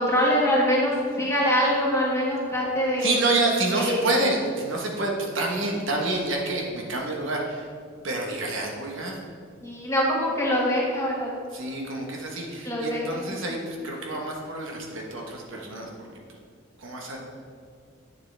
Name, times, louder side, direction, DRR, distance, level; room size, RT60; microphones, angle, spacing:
voice 1, 0.0-3.1 3.8-4.0 9.6-11.3 12.6-13.3, equal, 15° left, -4 dB, 1.7 m, -24 dB
voice 2, 3.0-7.7 8.0-9.2 11.5-15.9 16.8-17.2, right 2 dB, 65° right, 0 dB, 1.2 m, -28 dB
8.8 x 7.4 x 3.4 m, 2.1 s
head